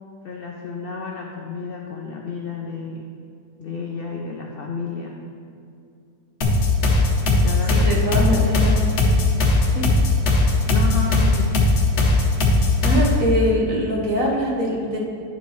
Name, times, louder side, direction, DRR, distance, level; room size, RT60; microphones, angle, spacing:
voice 1, 0.2-3.1 3.6-5.2 7.2-8.4 10.7-11.6, left 5 dB, 85° left, 0 dB, 0.5 m, -31 dB
sound 1, 6.4-13.3, left 2 dB, 50° left, 1.1 m, -18 dB
voice 2, 7.7-8.9 9.7-9.9 12.8-15.0, equal, 55° right, -3 dB, 1.6 m, -23 dB
9.8 x 6.9 x 3.1 m, 2.5 s
omnidirectional pair, 1.7 m